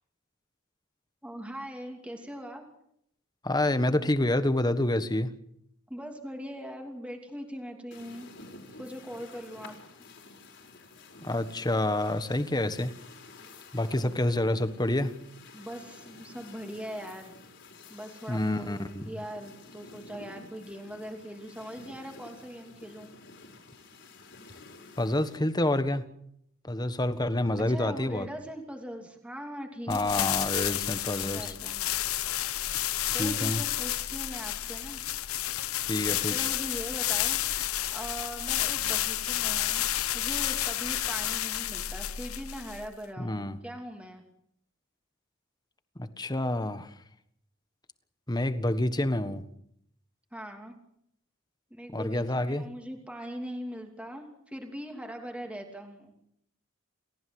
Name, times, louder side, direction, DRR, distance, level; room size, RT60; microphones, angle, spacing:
voice 1, 1.2-2.6 5.9-8.3 8.8-9.7 13.8-14.2 15.5-17.3 17.9-23.1 27.7-30.9 31.2-31.9 33.1-35.0 36.3-39.8 40.1-44.2 50.3-50.8 51.7-56.1, equal, 5° right, 3 dB, 2.9 m, -41 dB
voice 2, 3.4-5.3 11.2-12.9 13.7-15.1 18.3-19.1 25.0-26.1 26.6-28.3 29.9-31.5 33.2-33.6 35.8-36.5 43.2-43.6 46.0-46.9 48.3-49.4 51.9-52.7, left 1 dB, 20° left, 11 dB, 1.4 m, -28 dB
sound 1, 7.9-25.4, left 3 dB, 60° left, 4.9 m, -51 dB
sound 2, 29.9-43.0, left 13 dB, 80° left, 1.0 m, -31 dB
30.0 x 15.0 x 7.9 m, 0.74 s
head